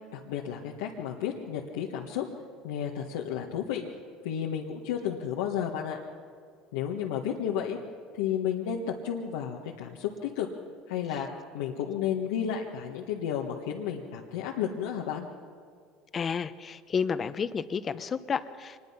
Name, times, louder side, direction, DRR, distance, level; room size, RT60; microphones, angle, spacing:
voice 1, 0.1-2.2 2.6-3.8 4.2-6.0 6.7-7.8 8.1-10.5 10.9-11.3 11.5-15.3, left 9 dB, 85° left, -1 dB, 1.5 m, -32 dB
voice 2, 16.1-18.9, left 6 dB, 35° left, 13 dB, 1.0 m, -31 dB
24.5 x 21.0 x 5.8 m, 2.1 s
supercardioid pair, 100°, 0 cm